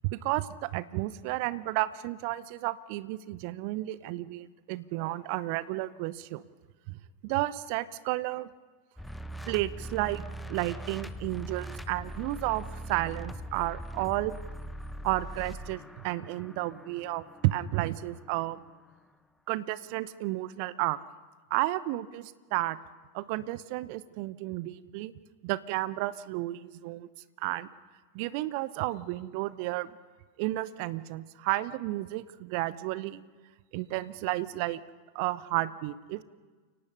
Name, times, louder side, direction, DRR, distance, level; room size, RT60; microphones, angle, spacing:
voice 1, 0.1-6.4 6.9-8.5 9.5-10.2 10.5-14.4 15.0-18.6 19.5-21.0 21.5-22.8 23.1-25.1 25.4-27.1 27.4-27.7 28.1-29.9 30.4-33.2 33.7-34.8 35.1-36.2, right 17 dB, 45° right, 17 dB, 0.8 m, -32 dB
sound 1, 9.0-18.9, right 1 dB, 5° left, 0.9 m, -42 dB
29.5 x 18.0 x 5.5 m, 1.4 s
figure-of-eight pair, 90°, 0 cm